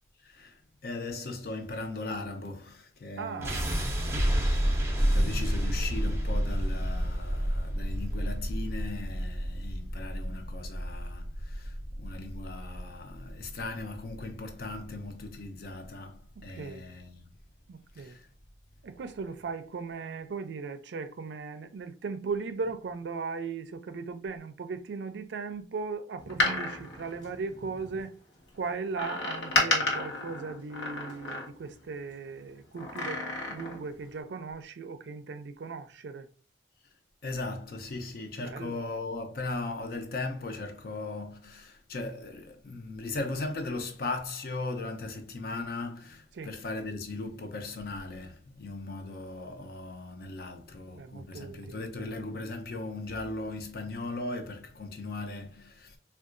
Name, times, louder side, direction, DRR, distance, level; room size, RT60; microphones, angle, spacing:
voice 1, 0.2-3.8 4.3-17.3 17.9-18.3 37.2-56.0, left 2 dB, 55° left, 0.5 m, -38 dB
voice 2, 3.2-3.8 16.5-16.8 17.7-18.2 18.8-28.2 28.5-36.3 38.4-38.8 46.3-46.5 51.0-51.8, right 4 dB, 75° right, 0.4 m, -37 dB
sound 1, 3.4-15.5, equal, 15° right, 0.5 m, -30 dB
Door, 26.2-28.0 28.9-31.8 32.7-33.9 34.2-34.3, left 2 dB, 80° left, 0.9 m, -31 dB
3.6 x 2.3 x 2.4 m
head